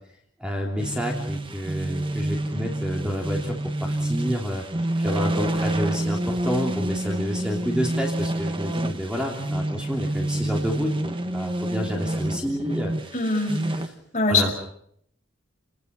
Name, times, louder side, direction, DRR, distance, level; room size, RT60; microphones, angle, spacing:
voice 1, 0.4-3.5 3.8-4.6 5.0-13.2 13.6-13.9 14.3-14.5, equal, 5° right, 0 dB, 3.1 m, -29 dB
sound 1, 0.8-13.9, right 1 dB, 25° right, 1.4 m, -28 dB
voice 2, 13.1-13.6 14.1-14.5, left 3 dB, 40° left, 2 dB, 5.8 m, -22 dB
29.0 x 20.5 x 5.5 m, 0.66 s
head